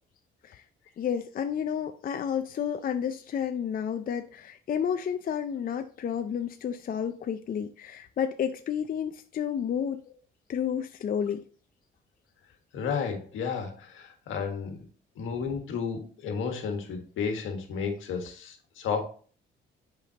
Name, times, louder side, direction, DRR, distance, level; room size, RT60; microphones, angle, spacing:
voice 1, 1.0-10.0 10.5-11.4, left 8 dB, 45° left, 0.5 m, -31 dB
voice 2, 12.7-14.8 15.2-19.0, left 6 dB, 80° left, 1.6 m, -32 dB
7.0 x 5.2 x 2.8 m
cardioid pair, 90°, 20 cm